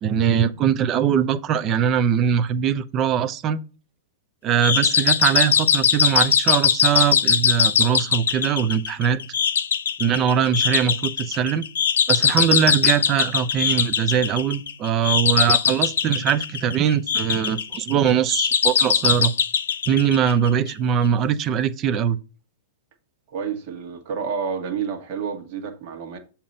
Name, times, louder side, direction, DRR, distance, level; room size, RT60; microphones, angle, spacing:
voice 1, 0.0-3.6 4.4-9.2 10.0-11.6 12.1-19.3 19.9-22.2, right 8 dB, 30° right, 0.6 m, -21 dB
sound 1, 4.6-20.7, left 7 dB, 85° left, 0.7 m, -21 dB
voice 2, 23.3-26.2, right 6 dB, 45° right, 1.5 m, -29 dB
7.1 x 2.9 x 5.3 m
hypercardioid pair, 140°, 0 cm